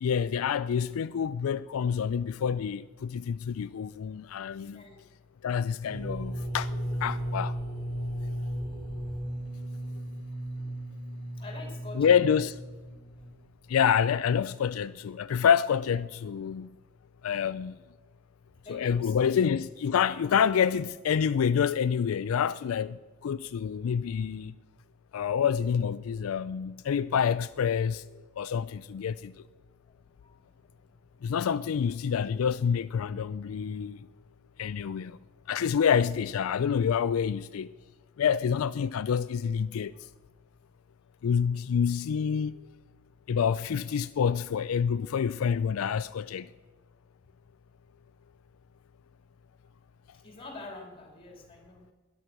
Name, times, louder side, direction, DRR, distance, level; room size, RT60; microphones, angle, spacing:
voice 1, 0.0-4.8 5.4-6.7 7.0-7.6 11.9-12.6 13.7-16.7 17.2-17.8 18.7-24.5 25.1-28.0 28.4-29.3 31.2-34.0 34.6-35.2 35.5-37.7 38.2-39.9 41.2-42.6 43.3-46.5, left 7 dB, 85° left, 0.4 m, -27 dB
sound 1, 5.9-13.6, equal, 20° right, 4.2 m, -35 dB
voice 2, 11.4-12.2 17.3-17.5 18.6-19.3 30.2-30.4 50.2-51.9, left 2 dB, 25° left, 2.7 m, -45 dB
13.0 x 11.0 x 6.0 m
head